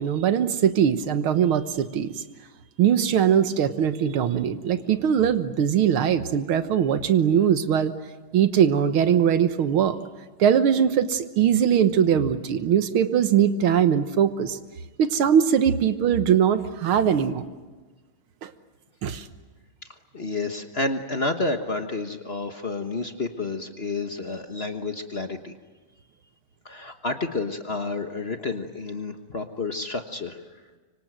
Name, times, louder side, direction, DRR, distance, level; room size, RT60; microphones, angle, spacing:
voice 1, 0.0-2.2 2.8-7.9 8.3-10.0 10.4-14.6 15.0-17.4 18.4-18.5 19.0-19.3, right 8 dB, 85° right, 11 dB, 2.0 m, -21 dB
voice 2, 20.1-25.5 26.6-30.4, left 3 dB, 35° left, 6 dB, 1.3 m, -30 dB
25.0 x 25.0 x 9.3 m, 1.3 s
omnidirectional pair, 2.3 m